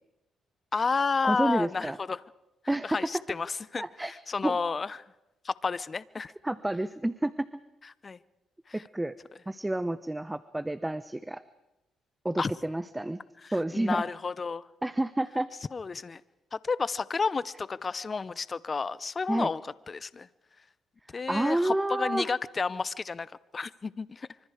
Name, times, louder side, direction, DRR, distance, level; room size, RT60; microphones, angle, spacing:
voice 1, 0.7-2.2 2.8-5.0 5.4-6.3 8.0-8.2 8.7-8.8 12.4-12.5 13.4-14.7 15.7-16.2 16.5-20.3 21.1-24.3, left 4 dB, 35° left, 19 dB, 0.7 m, -31 dB
voice 2, 1.2-2.0 2.7-3.0 3.8-4.1 4.4-4.6 6.4-7.5 8.7-9.1 9.5-11.4 12.2-13.2 13.5-14.0 14.8-15.5 19.3-19.5 21.3-22.3, right 1 dB, 10° right, 15 dB, 0.7 m, -29 dB
25.0 x 25.0 x 4.9 m, 0.94 s
cardioid pair, 90°, 0 cm